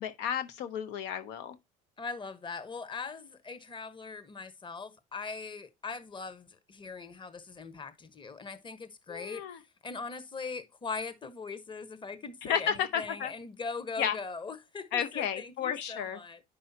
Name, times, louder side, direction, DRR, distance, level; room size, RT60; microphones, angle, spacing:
voice 1, 0.0-1.6 9.1-9.6 12.5-13.3 14.0-14.2 14.9-16.2, left 8 dB, 70° left, 0.9 m, -32 dB
voice 2, 2.0-16.4, left 4 dB, 25° left, 1.3 m, -41 dB
9.8 x 5.5 x 2.8 m
supercardioid pair, 75°, 18 cm